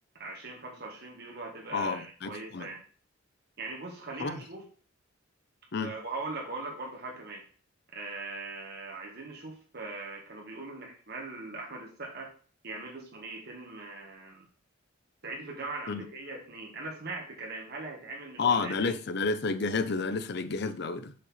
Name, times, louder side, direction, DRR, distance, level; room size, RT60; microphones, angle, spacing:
voice 1, 0.2-2.8 3.6-4.6 5.8-7.4 7.9-12.3 12.6-14.5 15.2-18.9, right 3 dB, 55° right, 1.7 m, -40 dB
voice 2, 1.7-2.7 4.2-4.4 5.7-5.9 15.9-16.1 18.4-21.1, left 4 dB, 55° left, 0.6 m, -30 dB
6.5 x 4.2 x 5.7 m
head